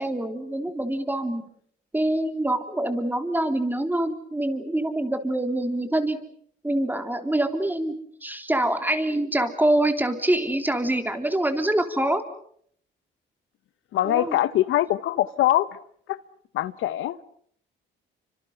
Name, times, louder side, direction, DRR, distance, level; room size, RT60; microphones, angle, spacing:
voice 1, 0.0-1.4 1.9-6.2 6.6-8.0 8.2-12.2 14.0-14.4, right 1 dB, 10° right, 3.3 m, -25 dB
voice 2, 13.9-15.7 16.1-16.2 16.5-17.2, left 14 dB, 80° left, 0.9 m, -23 dB
29.5 x 25.5 x 5.7 m
cardioid pair, 90°, 20 cm